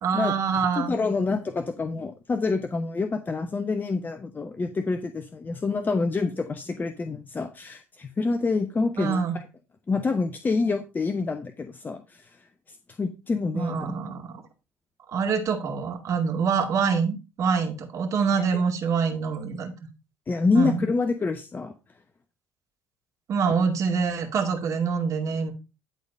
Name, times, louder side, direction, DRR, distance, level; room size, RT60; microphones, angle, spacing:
voice 1, 0.0-1.1 9.0-9.4 13.5-14.4 15.1-19.7 20.5-20.8 23.3-25.5, right 6 dB, 50° right, 4 dB, 2.3 m, -25 dB
voice 2, 0.8-9.4 9.9-13.9 18.4-18.6 20.3-21.7 23.5-23.6, left 4 dB, 25° left, 8 dB, 1.0 m, -27 dB
12.0 x 4.1 x 5.3 m, 0.29 s
hypercardioid pair, 65°, 7 cm